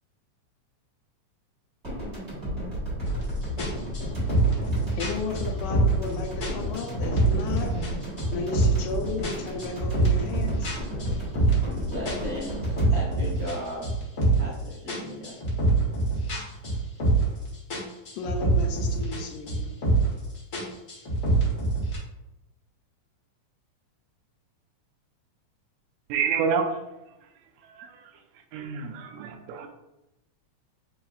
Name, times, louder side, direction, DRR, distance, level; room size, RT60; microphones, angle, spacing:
sound 1, 1.8-14.0, equal, 35° right, 1.2 m, -34 dB
sound 2, 3.0-3.2 3.6-6.1 6.4-8.9 9.2-11.7 12.1-14.5 14.9-17.4 17.7-19.2 19.5-20.2 20.5-22.0, right 2 dB, 60° left, 0.8 m, -25 dB
voice 1, 5.0-7.7 8.3-10.7 18.2-19.7, left 4 dB, 80° left, 3 dB, 1.9 m, -34 dB
voice 2, 11.9-13.9 14.4-15.3, equal, 50° right, -5 dB, 1.6 m, -35 dB
voice 3, 26.1-26.7 27.6-28.1 28.5-29.7, right 6 dB, 80° right, 4 dB, 1.7 m, -28 dB
7.1 x 2.9 x 2.4 m, 0.97 s
omnidirectional pair, 3.5 m